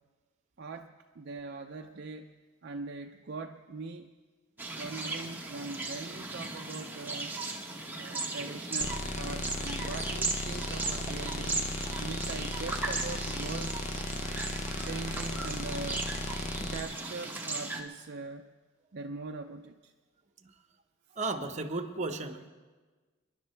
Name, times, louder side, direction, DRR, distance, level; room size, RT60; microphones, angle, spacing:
voice 1, 0.6-4.1 4.7-7.3 7.9-11.6 12.0-13.8 14.8-16.1 16.7-18.5 18.9-19.9, right 3 dB, 50° right, 4 dB, 0.5 m, -41 dB
sound 1, 4.6-17.8, right 3 dB, 10° right, 1.1 m, -37 dB
sound 2, 8.8-16.8, left 1 dB, 35° left, 0.7 m, -36 dB
voice 2, 21.1-22.5, right 3 dB, 35° right, 7 dB, 1.0 m, -34 dB
29.5 x 11.0 x 3.3 m, 1.3 s
head